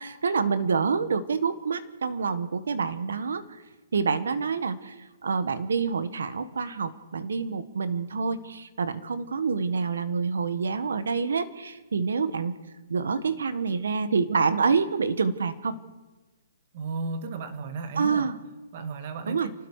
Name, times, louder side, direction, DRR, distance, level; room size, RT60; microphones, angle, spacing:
voice 1, 0.0-3.4 3.9-12.5 12.9-15.8 17.9-18.4 19.3-19.5, right 5 dB, 80° right, 12 dB, 1.6 m, -27 dB
voice 2, 16.7-18.3 18.7-19.5, right 4 dB, 35° right, 8 dB, 1.8 m, -34 dB
30.0 x 19.0 x 5.0 m, 1.2 s
hypercardioid pair, 175°, 0 cm